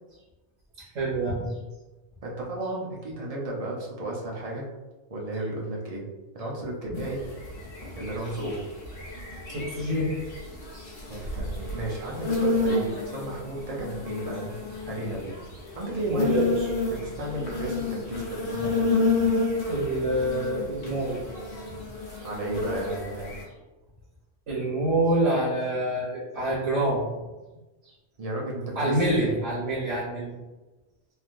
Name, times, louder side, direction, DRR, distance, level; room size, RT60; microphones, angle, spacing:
voice 1, 0.9-1.5 6.9-7.0 9.5-10.1 16.1-16.5 18.5-18.7 19.7-21.2 24.5-27.0 28.7-30.3, right 1 dB, 70° right, -6 dB, 1.1 m, -26 dB
voice 2, 2.2-4.7 5.1-6.0 6.3-7.2 8.0-8.6 11.1-14.5 14.8-15.3 15.7-16.4 16.9-19.0 22.2-23.3 28.2-29.4, right 1 dB, 40° right, -3 dB, 0.6 m, -33 dB
sound 1, 6.9-23.4, left 3 dB, 80° left, 1.2 m, -31 dB
3.2 x 2.4 x 2.5 m, 1.1 s
omnidirectional pair, 1.3 m